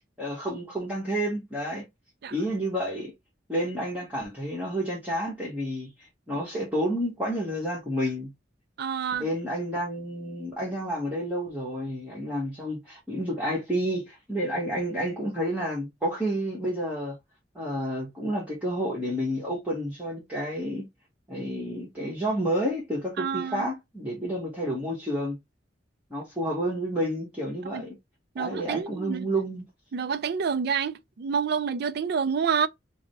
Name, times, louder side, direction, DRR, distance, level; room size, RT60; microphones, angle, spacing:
voice 1, 0.2-1.9 2.3-3.1 3.5-8.3 9.2-17.1 17.5-20.9 21.3-25.4 26.1-28.0 28.4-29.6, equal, 10° right, 1.2 m, -30 dB
voice 2, 8.8-9.3 23.2-23.7 27.7-27.9 28.4-29.3 29.9-32.7, right 6 dB, 60° right, 0.4 m, -28 dB
4.8 x 2.1 x 3.4 m
head